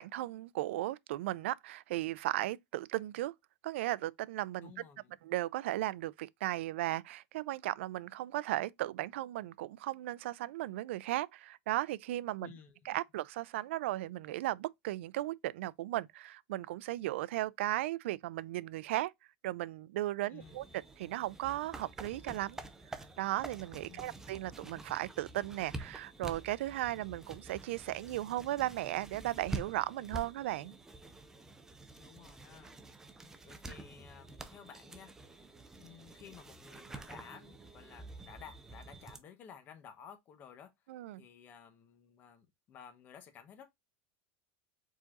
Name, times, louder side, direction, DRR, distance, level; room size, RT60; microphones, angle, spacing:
voice 1, 0.0-3.3 3.6-4.7 5.2-12.5 12.8-19.1 19.4-22.6 22.9-30.7 40.9-41.2, right 15 dB, 80° right, 0.4 m, -36 dB
voice 2, 4.6-5.1 12.4-12.7 20.3-20.6 23.9-24.3 32.0-32.8 33.4-35.1 35.8-40.7 41.2-43.6, left 8 dB, 30° left, 0.9 m, -54 dB
Book Turning, 20.4-39.2, right 2 dB, 5° right, 0.5 m, -48 dB
4.8 x 4.0 x 2.3 m
supercardioid pair, 160°, 6 cm